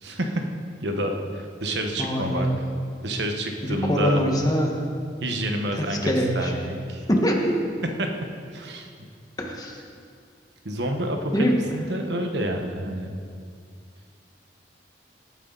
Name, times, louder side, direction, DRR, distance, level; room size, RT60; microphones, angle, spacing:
voice 1, 0.0-0.4 0.8-2.5 3.0-4.2 5.2-7.1 8.0-8.1 8.5-9.1 10.6-13.1, right 1 dB, 75° right, 3 dB, 1.2 m, -28 dB
voice 2, 2.0-2.6 3.6-4.7 5.8-6.5 7.1-7.6 9.4-9.8 11.3-11.5, equal, 20° left, 0 dB, 1.5 m, -23 dB
17.5 x 9.7 x 4.0 m, 2.2 s
head